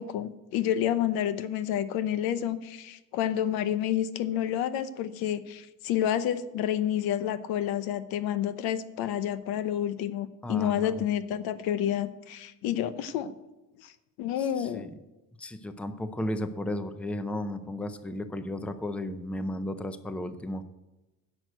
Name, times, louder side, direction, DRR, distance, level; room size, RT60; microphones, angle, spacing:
voice 1, 0.0-13.3 13.8-13.9 14.2-14.9, left 10 dB, 80° left, 13 dB, 0.9 m, -29 dB
voice 2, 10.4-11.0 14.4-14.9 15.4-20.6, left 1 dB, 5° left, 10 dB, 0.5 m, -34 dB
10.5 x 6.5 x 7.8 m, 1.0 s
cardioid pair, 130°, 36 cm